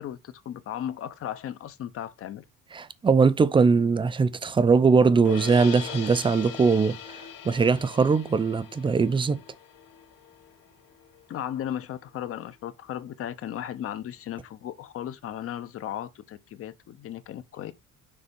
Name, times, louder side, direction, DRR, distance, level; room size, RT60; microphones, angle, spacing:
voice 1, 0.0-2.4 11.3-17.7, left 10 dB, 45° left, 0.7 m, -36 dB
voice 2, 2.7-7.0 7.4-9.4, right 5 dB, 15° right, 0.4 m, -21 dB
sound 1, 5.3-11.4, left 8 dB, 85° left, 2.1 m, -41 dB
6.8 x 4.0 x 5.2 m
cardioid pair, 165°, 33 cm